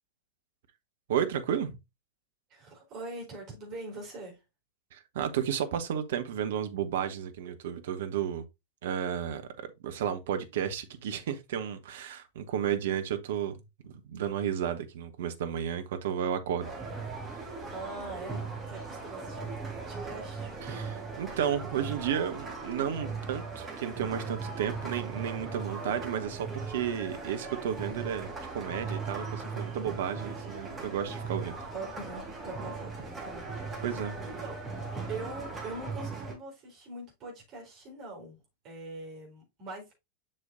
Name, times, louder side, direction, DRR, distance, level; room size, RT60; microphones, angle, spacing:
voice 1, 1.1-1.8 4.9-8.4 8.8-13.6 13.8-16.7 20.6-31.6 33.8-34.2, right 9 dB, 55° right, 1.1 m, -33 dB
voice 2, 2.5-4.4 17.7-20.6 31.7-34.6 35.1-40.0, right 2 dB, 35° right, 4.0 m, -43 dB
sound 1, 16.6-36.3, right 4 dB, 20° right, 3.5 m, -38 dB
7.5 x 6.3 x 2.5 m
figure-of-eight pair, 90°, 0 cm